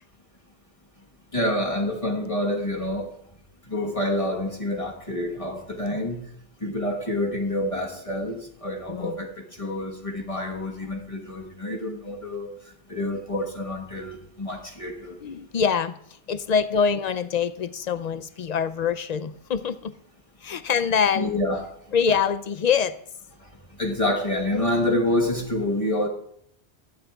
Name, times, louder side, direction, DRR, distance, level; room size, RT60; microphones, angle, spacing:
voice 1, 1.3-3.1 3.7-6.2 6.6-9.3 9.6-12.5 12.9-15.2 21.1-21.7 23.8-26.1, left 1 dB, 30° left, 0 dB, 1.3 m, -27 dB
voice 2, 8.9-9.2 15.2-19.9 20.4-21.3 21.9-23.0, left 6 dB, 55° left, 13 dB, 0.5 m, -25 dB
18.5 x 12.5 x 2.3 m, 0.72 s
omnidirectional pair, 1.1 m